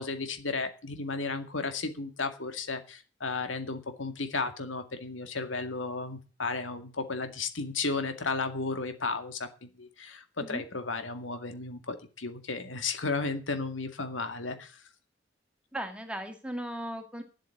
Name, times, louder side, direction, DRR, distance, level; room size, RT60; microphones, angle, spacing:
voice 1, 0.0-14.7, left 3 dB, 90° left, 7 dB, 2.2 m, -34 dB
voice 2, 15.7-17.2, right 1 dB, 5° right, 5 dB, 2.2 m, -37 dB
10.5 x 8.3 x 9.1 m, 0.35 s
head